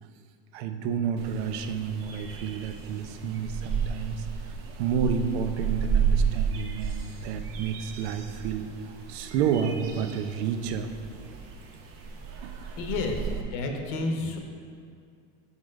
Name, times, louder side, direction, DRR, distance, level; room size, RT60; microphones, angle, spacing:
voice 1, 0.5-10.9 12.4-12.5 14.2-14.3, right 7 dB, 75° right, 8 dB, 0.7 m, -30 dB
sound 1, 1.2-13.4, right 7 dB, 40° right, 0.8 m, -32 dB
voice 2, 12.8-14.4, left 3 dB, 60° left, 3 dB, 0.9 m, -30 dB
6.4 x 5.5 x 5.2 m, 2.3 s
supercardioid pair, 145°, 33 cm